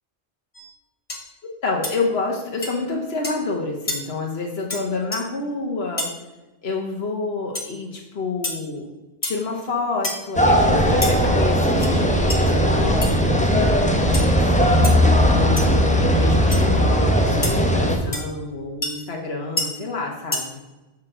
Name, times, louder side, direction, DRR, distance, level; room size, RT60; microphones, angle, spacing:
sound 1, 0.5-0.7 1.1-1.3 1.8-2.0 2.6-2.7 3.2-3.4 3.9-4.0 4.7-4.8 5.1-5.2 6.0-6.1 7.5-7.7 8.4-8.6 9.2-9.4 10.0-10.3 11.0-11.1 11.7-11.9 12.3-12.4 13.0-13.1 14.1-14.3 14.8-14.9 15.6-15.7 16.5-16.6 17.4-17.5 18.1-18.2 18.8-18.9 19.6-19.7 20.3-20.4, left 2 dB, 30° left, 1.3 m, -27 dB
voice 1, 1.6-6.1 6.6-8.9 9.2-15.0 15.3-20.5, left 3 dB, 75° left, 0 dB, 1.4 m, -28 dB
sound 2, 10.3-18.0, equal, 5° left, 1.0 m, -18 dB
7.3 x 6.1 x 6.1 m, 1.1 s
omnidirectional pair, 1.1 m